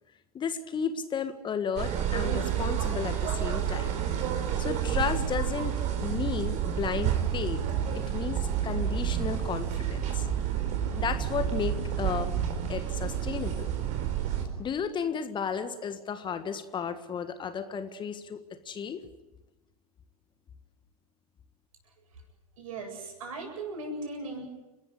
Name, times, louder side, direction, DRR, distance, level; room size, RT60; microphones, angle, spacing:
voice 1, 0.3-4.0 4.6-7.6 7.9-10.2 11.0-12.3 12.7-13.7 14.6-19.1, left 6 dB, 25° left, 10 dB, 1.6 m, -33 dB
sound 1, 1.8-14.5, right 9 dB, 40° right, 4.8 m, -29 dB
voice 2, 21.8-22.2 22.6-24.4, right 2 dB, 65° right, 3 dB, 7.9 m, -38 dB
30.0 x 13.0 x 9.9 m, 1.1 s
figure-of-eight pair, 90°, 19 cm